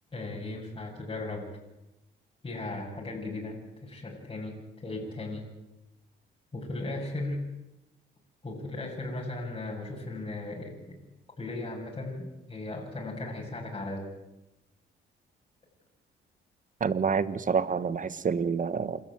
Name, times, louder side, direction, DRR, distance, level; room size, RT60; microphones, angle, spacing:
voice 1, 0.1-1.5 2.4-4.5 4.8-5.4 6.5-7.4 8.4-11.0 11.4-14.0, left 2 dB, 25° left, -4 dB, 7.5 m, -36 dB
voice 2, 16.8-19.0, right 6 dB, 40° right, 14 dB, 1.5 m, -28 dB
28.0 x 14.0 x 9.4 m, 0.94 s
cardioid pair, 90°, 20 cm